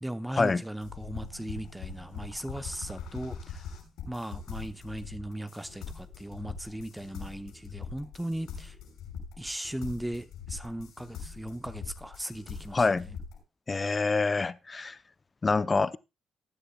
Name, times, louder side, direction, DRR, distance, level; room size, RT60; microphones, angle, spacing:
voice 1, 0.0-3.6 4.1-8.8 9.4-12.8, right 1 dB, 5° right, 0.9 m, -37 dB
sound 1, 0.8-13.4, left 6 dB, 85° left, 6.0 m, -42 dB
voice 2, 12.7-13.1 13.7-15.0 15.4-16.0, left 4 dB, 30° left, 0.6 m, -26 dB
19.0 x 9.9 x 2.3 m
cardioid pair, 90°, 0 cm